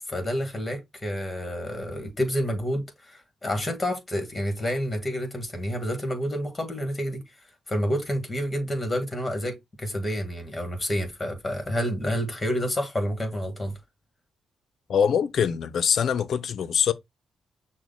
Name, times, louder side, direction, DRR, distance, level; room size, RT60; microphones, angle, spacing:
voice 1, 0.1-7.2 7.7-13.7, equal, 15° left, 1.6 m, -29 dB
voice 2, 14.9-16.9, left 7 dB, 65° left, 0.5 m, -23 dB
6.1 x 2.2 x 3.8 m
cardioid pair, 105°, 0 cm